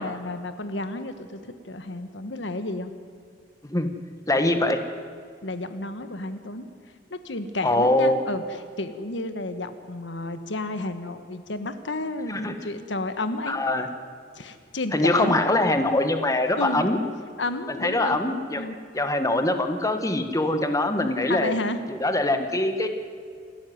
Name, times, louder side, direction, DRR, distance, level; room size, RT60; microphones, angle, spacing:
voice 1, 0.0-2.9 5.4-6.7 7.1-13.6 14.3-15.4 16.6-16.8 17.4-18.2 18.5-18.7 21.3-21.8, left 2 dB, 85° left, 9 dB, 1.4 m, -31 dB
voice 2, 4.3-4.8 7.6-8.2 12.3-12.5 13.5-13.9 14.9-17.0 17.7-18.6 18.9-21.5 21.9-22.9, left 1 dB, 20° left, 7 dB, 1.4 m, -23 dB
28.0 x 13.0 x 9.5 m, 2.1 s
head